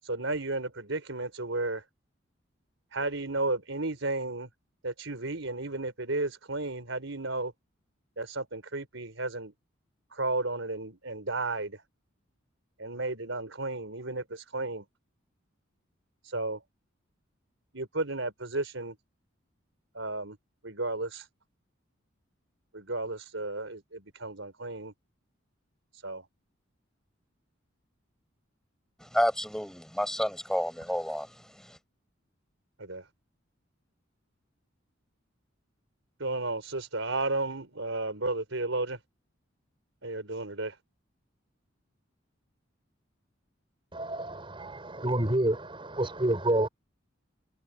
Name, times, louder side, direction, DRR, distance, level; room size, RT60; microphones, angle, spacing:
voice 1, 0.0-1.8 2.9-4.5 4.8-7.5 8.2-9.5 10.1-11.8 12.8-14.8 16.2-16.6 17.7-19.0 19.9-20.4 20.6-21.3 22.7-24.9 25.9-26.3 32.8-33.1 36.2-39.0 40.0-40.8, right 2 dB, 75° right, 4.9 m, -33 dB
voice 2, 29.0-31.8, equal, 5° left, 7.2 m, -30 dB
voice 3, 43.9-46.7, right 1 dB, 25° right, 4.7 m, -28 dB
head